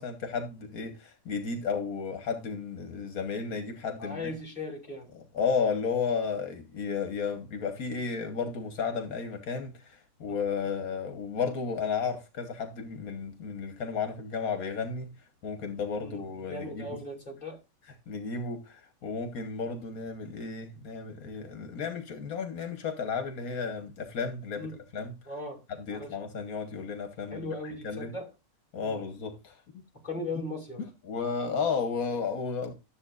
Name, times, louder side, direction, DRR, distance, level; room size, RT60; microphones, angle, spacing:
voice 1, 0.0-4.3 5.1-15.1 15.4-17.0 18.1-25.1 25.9-28.1 28.7-29.8 31.0-32.7, left 5 dB, 80° left, 1.6 m, -33 dB
voice 2, 4.0-5.1 16.0-17.6 24.6-24.8 25.3-25.6 25.9-26.1 27.3-28.3 28.8-29.0 30.0-30.8, left 2 dB, 30° left, 2.9 m, -38 dB
13.0 x 7.3 x 2.4 m
omnidirectional pair, 1.5 m